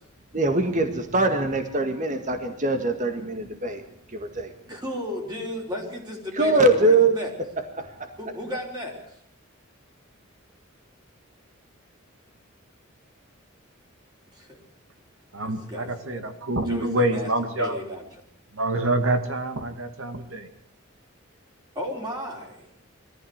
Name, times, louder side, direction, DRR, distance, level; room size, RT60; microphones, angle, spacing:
voice 1, 0.3-3.8 4.1-4.5 6.4-7.2 7.8-8.1, right 2 dB, 35° right, 6 dB, 1.9 m, -22 dB
voice 2, 4.7-7.3 8.2-9.1 14.3-14.6 15.4-17.3 17.6-18.2 21.7-22.7, left 1 dB, 20° right, -1 dB, 4.7 m, -34 dB
voice 3, 15.3-17.8 18.5-20.5, right 1 dB, 70° right, 7 dB, 2.3 m, -26 dB
22.5 x 14.5 x 8.1 m, 0.72 s
head